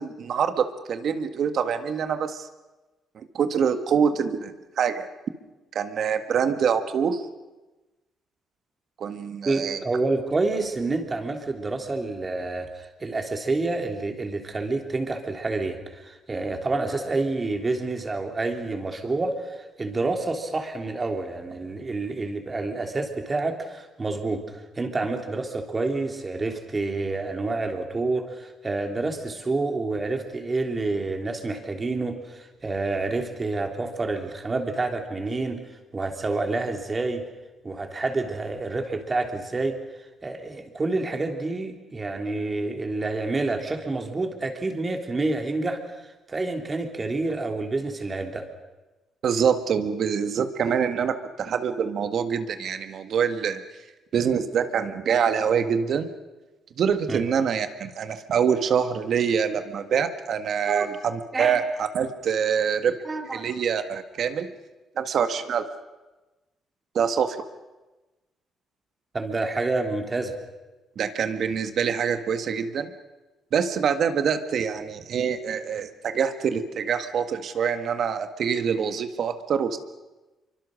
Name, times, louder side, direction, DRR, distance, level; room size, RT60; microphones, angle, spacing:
voice 1, 0.0-2.5 3.1-5.1 5.7-7.2 9.0-9.8 49.2-53.6 54.1-56.1 56.8-63.0 63.3-64.5 64.9-65.6 66.9-67.4 70.9-72.9 73.5-79.8, right 7 dB, 65° right, 9 dB, 1.7 m, -25 dB
voice 2, 9.4-35.6 35.9-37.3 37.6-39.8 40.2-48.4 57.1-57.2 60.7-60.9 61.3-61.6 63.0-63.5 69.1-70.3, right 3 dB, 30° right, 4 dB, 3.3 m, -28 dB
26.0 x 24.0 x 6.5 m, 1.1 s
cardioid pair, 90°, 0 cm